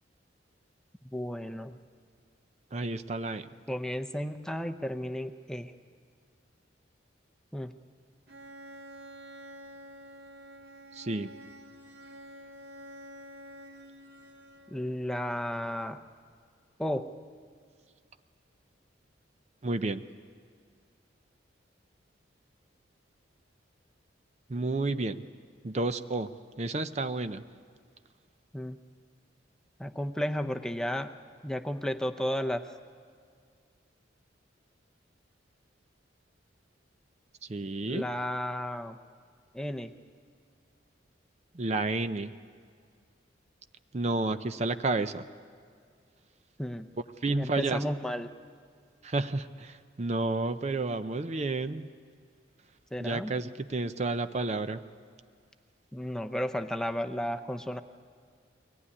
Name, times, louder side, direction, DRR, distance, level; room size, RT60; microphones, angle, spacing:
voice 1, 1.0-1.8 3.7-5.7 7.5-7.7 14.7-16.0 16.8-17.1 28.5-28.8 29.8-31.1 31.4-32.7 37.9-39.0 39.5-39.9 46.6-46.9 47.3-48.3 52.9-53.3 55.9-57.8, equal, 5° left, 6 dB, 0.6 m, -33 dB
voice 2, 2.7-3.4 10.9-11.3 19.6-20.0 24.5-25.2 25.6-26.3 26.6-27.4 37.5-38.1 41.5-42.3 43.9-45.2 47.2-47.8 49.0-51.9 53.0-54.8, right 2 dB, 35° right, 10 dB, 0.5 m, -31 dB
Bowed string instrument, 8.3-15.0, equal, 55° right, 1.8 m, -49 dB
23.0 x 18.0 x 9.8 m, 2.2 s
head